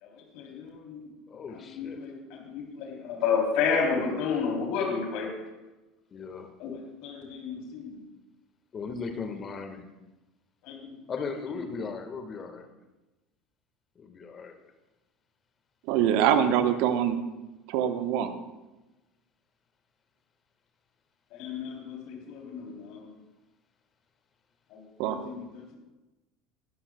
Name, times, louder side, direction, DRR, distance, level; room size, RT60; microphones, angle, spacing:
voice 1, 0.0-1.1 1.7-5.3 6.6-6.7 7.0-8.0 10.6-11.0 21.4-23.1 24.7-25.8, left 5 dB, 55° left, 0 dB, 3.2 m, -31 dB
voice 2, 1.3-2.1 5.2-5.4 6.1-6.5 8.7-9.9 11.1-12.7 14.0-14.6, left 5 dB, 30° left, 6 dB, 1.6 m, -37 dB
voice 3, 15.9-17.2 17.7-18.3 25.0-25.2, right 9 dB, 55° right, 10 dB, 1.0 m, -24 dB
21.0 x 12.5 x 2.3 m, 1.1 s
figure-of-eight pair, 70°, 0 cm